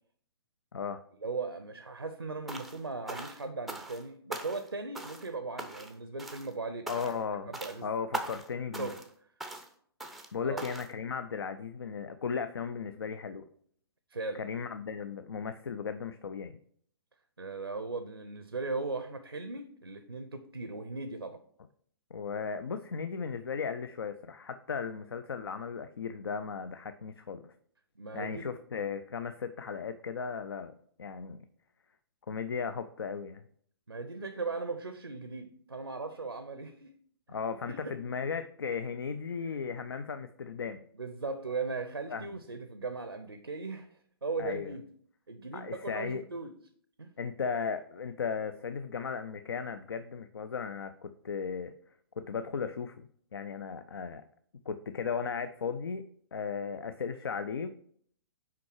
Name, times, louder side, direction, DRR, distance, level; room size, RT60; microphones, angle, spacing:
voice 1, 1.2-7.1 7.4-7.9 8.8-9.0 10.4-10.6 14.1-14.4 17.4-21.4 28.0-28.4 33.9-36.9 37.7-37.9 39.4-39.6 40.9-43.9 44.2-44.9 45.3-46.5 47.0-47.1, right 3 dB, 85° right, 0.6 m, -38 dB
sound 1, 2.5-2.8 3.1-4.0 4.3-4.7 4.9-5.3 5.6-5.9 6.2-6.5 6.9-7.2 7.5-7.8 8.1-8.5 8.7-9.1 9.4-9.7 10.0-10.3 10.6-10.9, right 2 dB, ahead, 0.5 m, -40 dB
voice 2, 6.9-7.5 7.8-8.9 10.3-13.4 14.3-16.6 22.1-27.4 28.1-30.7 31.0-31.4 32.3-33.4 37.3-40.8 42.1-42.4 44.4-44.7 45.5-46.2 47.2-51.7 52.2-53.1 53.3-54.2 54.7-57.7, left 6 dB, 65° left, 0.5 m, -36 dB
5.9 x 4.7 x 4.6 m
figure-of-eight pair, 120°, 13 cm